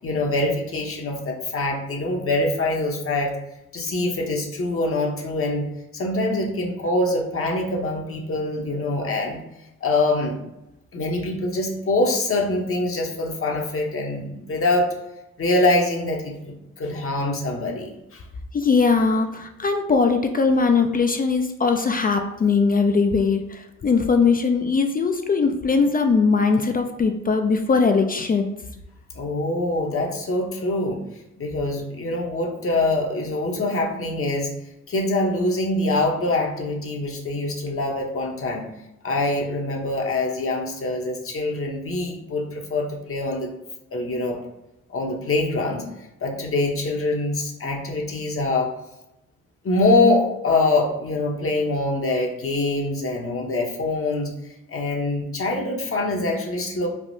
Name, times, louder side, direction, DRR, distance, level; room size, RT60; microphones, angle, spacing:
voice 1, 0.0-3.3 3.7-5.7 5.9-9.4 9.8-10.4 10.9-14.9 15.4-18.2 29.1-31.0 31.4-34.5 34.9-38.6 39.0-43.5 43.9-44.4 44.9-45.8 46.2-48.7 49.6-54.3 54.7-56.9, left 2 dB, 45° left, 0 dB, 0.8 m, -24 dB
voice 2, 18.5-28.5, left 4 dB, 30° left, 5 dB, 0.3 m, -20 dB
3.4 x 2.4 x 2.6 m, 0.88 s
supercardioid pair, 50°, 31 cm